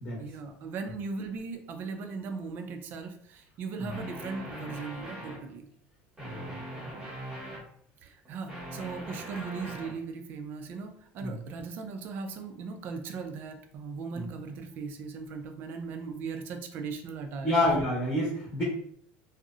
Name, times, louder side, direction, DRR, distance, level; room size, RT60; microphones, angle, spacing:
voice 1, 0.2-5.7 8.0-17.7, right 4 dB, 40° right, 6 dB, 0.3 m, -38 dB
sound 1, 3.9-5.5 6.2-7.7 8.2-10.0, right 1 dB, 15° right, 0.7 m, -41 dB
voice 2, 6.2-6.5 11.2-11.4 14.1-14.3 17.4-18.6, left 1 dB, 25° left, -5 dB, 0.8 m, -28 dB
2.7 x 2.0 x 2.4 m, 0.64 s
cardioid pair, 155°, 5 cm